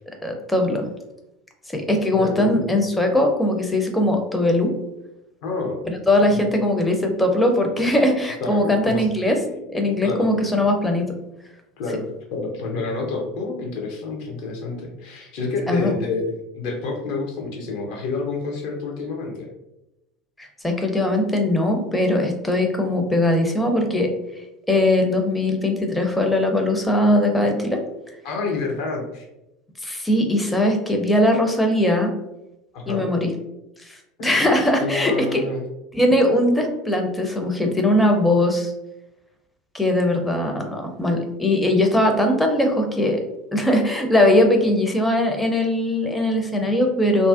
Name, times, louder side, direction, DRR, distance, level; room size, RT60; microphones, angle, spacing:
voice 1, 0.2-0.9 1.7-4.7 6.1-9.4 9.7-11.2 15.7-15.9 20.4-27.8 29.8-32.1 32.9-33.3 33.8-35.4 35.9-38.7 39.7-43.2 43.5-47.3, left 1 dB, 10° left, 3 dB, 0.5 m, -20 dB
voice 2, 2.2-2.7 5.4-5.8 6.3-6.4 8.4-9.1 10.0-10.3 11.8-12.0 12.3-19.5 28.2-29.2 32.7-33.1 34.8-35.6, left 3 dB, 60° left, 1 dB, 0.6 m, -28 dB
2.4 x 2.1 x 2.4 m, 0.91 s
figure-of-eight pair, 70°, 0 cm